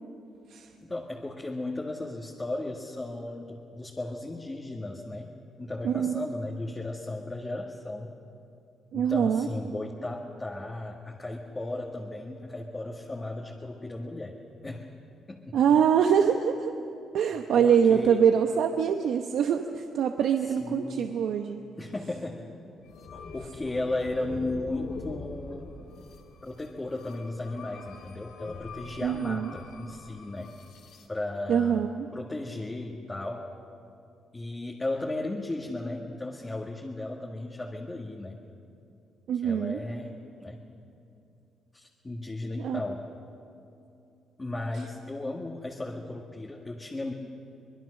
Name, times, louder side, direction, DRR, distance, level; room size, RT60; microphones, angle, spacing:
voice 1, 0.8-8.2 8.9-14.4 14.6-14.9 15.3-15.6 17.5-18.2 20.6-21.1 21.8-22.5 23.1-25.7 26.4-30.6 31.1-31.8 32.1-33.5 34.3-38.4 39.4-40.6 41.7-43.0 44.4-47.1, left 2 dB, 20° left, -1 dB, 1.8 m, -35 dB
voice 2, 5.8-6.2 8.9-9.5 15.5-16.7 17.1-21.6 29.0-29.5 31.5-32.1 39.3-39.8 42.6-42.8, right 8 dB, 75° right, 5 dB, 0.9 m, -24 dB
sound 1, 22.8-31.1, left 4 dB, 80° left, 2.4 m, -44 dB
24.5 x 20.5 x 6.5 m, 2.6 s
cardioid pair, 90°, 0 cm